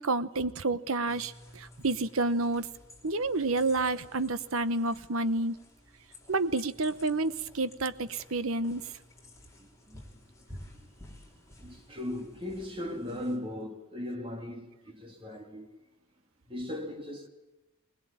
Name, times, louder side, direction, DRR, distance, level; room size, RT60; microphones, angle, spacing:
voice 1, 0.0-2.7 3.0-5.6 6.3-8.8, right 2 dB, 70° right, 1.0 m, -29 dB
sound 1, 1.1-13.4, left 1 dB, 15° left, 3.8 m, -53 dB
voice 2, 9.6-10.0 10.8-10.9 11.6-15.7 16.5-17.3, left 1 dB, 25° right, 2.3 m, -38 dB
21.0 x 20.5 x 8.8 m
head